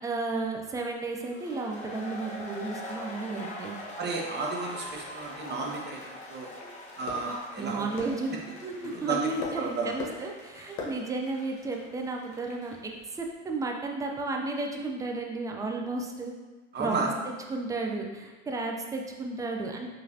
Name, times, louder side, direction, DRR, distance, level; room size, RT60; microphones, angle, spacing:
voice 1, 0.0-3.8 7.6-16.3 16.8-17.1 17.5-19.9, right 3 dB, 10° right, 1 dB, 0.4 m, -33 dB
sound 1, 1.2-12.9, left 1 dB, 20° left, 0.9 m, -44 dB
voice 2, 4.0-6.5 7.0-8.1 8.8-9.3 9.6-9.9 16.7-17.1, right 4 dB, 25° right, 0 dB, 0.8 m, -33 dB
sound 2, 4.5-13.4, left 3 dB, 60° left, 1.2 m, -45 dB
4.8 x 3.2 x 2.7 m, 1.3 s
hypercardioid pair, 90°, 38 cm